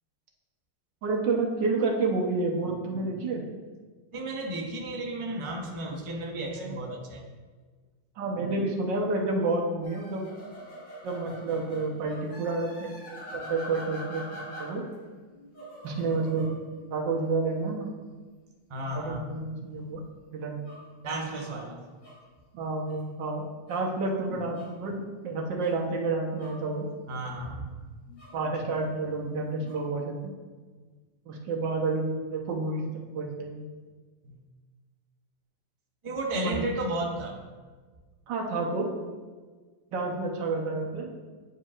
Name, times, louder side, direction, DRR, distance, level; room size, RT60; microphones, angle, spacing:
voice 1, 1.0-3.4 6.6-6.8 8.2-10.2 11.0-14.3 14.6-14.8 15.8-16.5 16.9-17.9 18.9-20.0 20.3-20.6 22.5-26.9 28.3-30.3 31.3-32.9 33.1-33.7 36.4-36.6 38.3-38.9 39.9-41.1, right 3 dB, 70° right, 0 dB, 1.6 m, -29 dB
voice 2, 4.1-7.2 18.7-19.2 21.0-21.8 27.1-27.7 34.2-34.4 36.0-37.4, right 1 dB, 50° right, -1 dB, 0.3 m, -33 dB
sound 1, 9.8-15.0 15.3-17.4 20.5-22.3 22.9-23.0 23.7-23.9 24.5-24.8 25.5-25.8 26.1-27.6 28.1-28.4 29.0-29.8, equal, 45° left, 1.7 m, -45 dB
10.0 x 4.7 x 2.4 m, 1.4 s
omnidirectional pair, 2.0 m